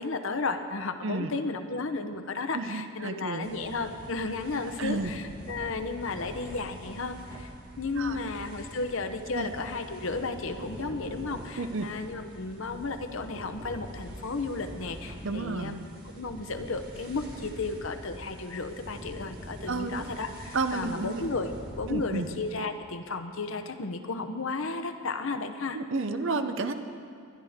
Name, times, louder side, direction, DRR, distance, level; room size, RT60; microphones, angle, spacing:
voice 1, 0.0-7.5 7.8-15.8 16.2-25.8, left 3 dB, 60° left, 7 dB, 0.9 m, -33 dB
voice 2, 2.5-3.5 4.8-5.1 8.0-8.2 9.3-9.5 11.6-11.9 15.2-15.8 19.7-20.1 20.5-21.2 21.9-22.3 25.7-26.7, right 3 dB, 60° right, 8 dB, 0.8 m, -31 dB
sound 1, 3.4-22.5, equal, 40° right, 1.9 m, -44 dB
20.5 x 12.0 x 3.6 m, 2.4 s
head